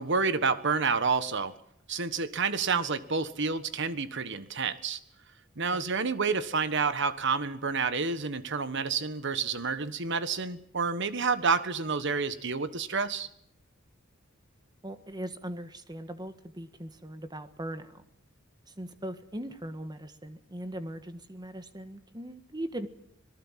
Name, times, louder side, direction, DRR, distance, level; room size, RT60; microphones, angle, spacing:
voice 1, 0.0-1.6 1.9-5.0 5.6-13.3, right 5 dB, 60° right, 13 dB, 1.4 m, -29 dB
voice 2, 14.8-18.0 18.8-22.9, right 1 dB, 20° right, 10 dB, 1.6 m, -39 dB
26.0 x 19.0 x 7.5 m, 0.72 s
head